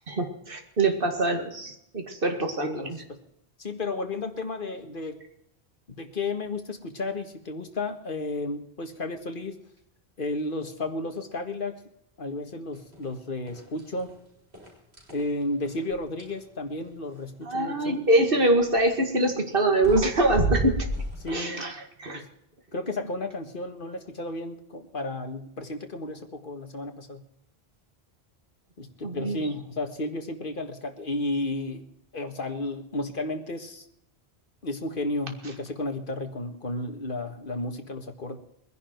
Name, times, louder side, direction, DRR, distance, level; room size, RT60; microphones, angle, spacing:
voice 1, 0.1-3.0 17.5-20.9 21.3-21.7 22.0-22.2 29.0-29.4, right 1 dB, 60° right, 4 dB, 2.2 m, -24 dB
voice 2, 2.8-3.2 3.6-5.2 6.0-9.6 10.2-11.8 12.2-14.1 15.1-18.0 21.2-21.7 22.1-22.3 22.7-27.3 28.8-31.9 32.1-33.9 34.6-38.4, left 2 dB, 55° left, 5 dB, 1.8 m, -33 dB
sound 1, 12.9-13.1 13.5-14.1 14.5-16.4 18.6-18.9 19.5-19.6 19.8-21.3, right 2 dB, 85° right, 5.4 m, -31 dB
21.5 x 10.5 x 4.5 m, 0.76 s
omnidirectional pair, 1.1 m